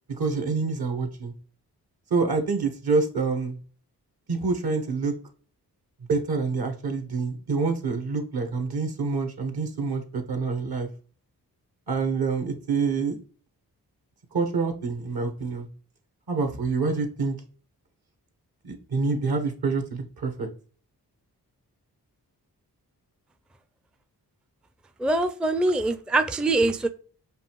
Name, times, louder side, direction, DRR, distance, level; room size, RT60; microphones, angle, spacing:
voice 1, 0.1-1.3 2.1-3.6 4.3-5.1 6.1-10.9 11.9-13.2 14.3-15.7 16.3-17.4 18.6-20.5, right 4 dB, 65° right, 6 dB, 1.3 m, -27 dB
voice 2, 25.0-26.9, right 2 dB, ahead, 9 dB, 0.4 m, -23 dB
5.3 x 2.4 x 3.0 m, 0.41 s
supercardioid pair, 40°, 41 cm